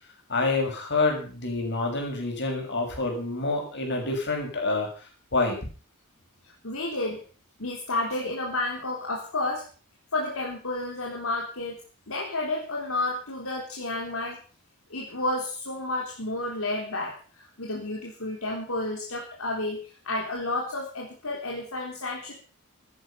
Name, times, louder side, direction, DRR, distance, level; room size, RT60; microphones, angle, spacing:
voice 1, 0.3-5.6, left 3 dB, 55° left, 2 dB, 6.7 m, -27 dB
voice 2, 6.4-7.2 7.6-9.6 10.1-11.8 12.1-14.4 14.9-19.8 20.0-22.3, left 2 dB, 70° left, -1 dB, 3.6 m, -31 dB
15.5 x 13.5 x 5.8 m, 0.39 s
head